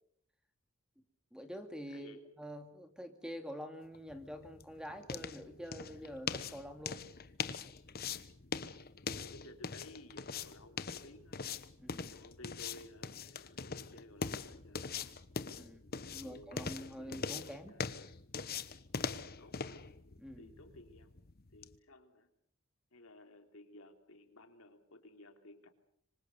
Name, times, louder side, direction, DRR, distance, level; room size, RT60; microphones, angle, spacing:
voice 1, 1.3-7.1 11.8-12.1 15.5-15.8 16.1-17.8 20.2-20.5, equal, 5° right, 7 dB, 2.3 m, -46 dB
voice 2, 1.9-2.2 9.2-11.4 12.1-14.9 16.0-17.9 19.4-19.8 20.4-21.1 21.5-22.3 22.9-25.7, left 1 dB, 65° left, 6 dB, 3.4 m, -56 dB
sound 1, 3.9-21.8, left 5 dB, 45° left, 1.2 m, -42 dB
26.0 x 25.5 x 6.9 m, 0.65 s
head